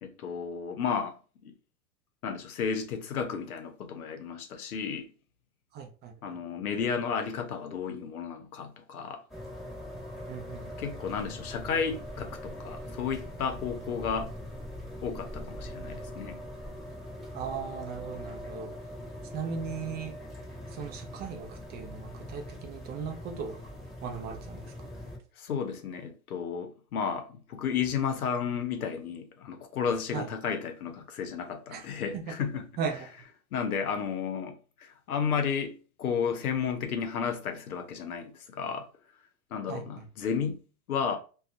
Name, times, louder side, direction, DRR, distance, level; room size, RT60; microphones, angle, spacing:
voice 1, 0.0-1.2 1.4-1.5 2.2-5.1 6.2-9.2 10.8-14.3 15.0-16.4 25.4-32.7 33.5-38.9 39.5-40.6 40.9-41.2, left 6 dB, 85° left, 0.7 m, -33 dB
voice 2, 5.7-6.4 10.3-10.8 17.3-18.7 19.3-20.1 20.7-23.6 24.0-24.9 30.1-30.3 31.7-31.9 32.1-32.3 32.8-33.1 39.7-40.1, right 6 dB, 25° right, 0.4 m, -37 dB
sound 1, 9.3-25.2, equal, ahead, 1.0 m, -42 dB
2.5 x 2.2 x 2.4 m
hypercardioid pair, 100°, 43 cm